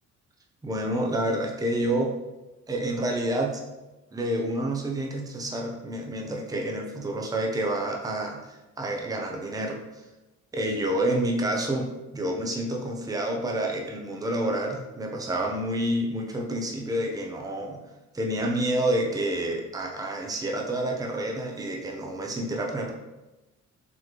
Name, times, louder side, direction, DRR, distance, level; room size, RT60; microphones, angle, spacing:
voice 1, 0.6-2.1 2.7-3.6 4.1-9.8 10.5-17.8 18.1-22.9, right 1 dB, 10° right, 0 dB, 0.6 m, -28 dB
4.1 x 3.1 x 3.0 m, 1.0 s
cardioid pair, 90°, 30 cm